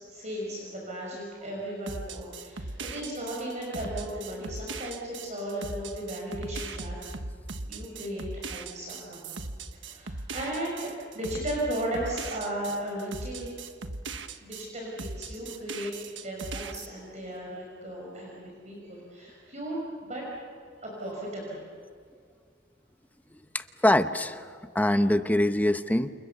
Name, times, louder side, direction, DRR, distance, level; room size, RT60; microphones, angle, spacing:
voice 1, 0.1-6.9 7.7-9.3 9.7-13.5 14.4-15.9 16.2-19.8 20.0-20.2 20.8-21.7, right 1 dB, 40° right, -2 dB, 5.8 m, -36 dB
sound 1, 1.9-14.7 15.0-16.9, right 3 dB, 85° right, 1.5 m, -39 dB
voice 2, 23.5-24.5 24.7-26.1, left 1 dB, 10° left, 9 dB, 0.8 m, -24 dB
29.5 x 28.5 x 7.0 m, 2.1 s
head